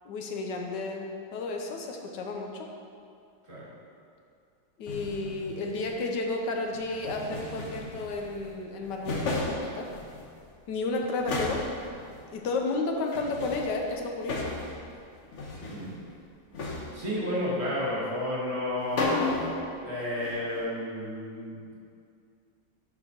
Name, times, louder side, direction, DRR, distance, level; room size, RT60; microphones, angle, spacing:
voice 1, 0.0-2.7 4.8-9.9 10.7-11.6 12.3-14.5, left 3 dB, 75° left, 2 dB, 1.3 m, -32 dB
sound 1, 4.9-6.0 6.7-8.5 8.8-10.4 10.7-10.8 11.2-12.2 13.1-14.9 15.1-15.9 16.5-17.1 18.6-18.7 18.9-19.7 20.0-20.6, left 2 dB, 50° left, 1.0 m, -34 dB
voice 2, 16.9-19.1 19.8-21.7, left 1 dB, 40° right, -7 dB, 1.7 m, -32 dB
11.5 x 4.6 x 2.9 m, 2.4 s
omnidirectional pair, 1.9 m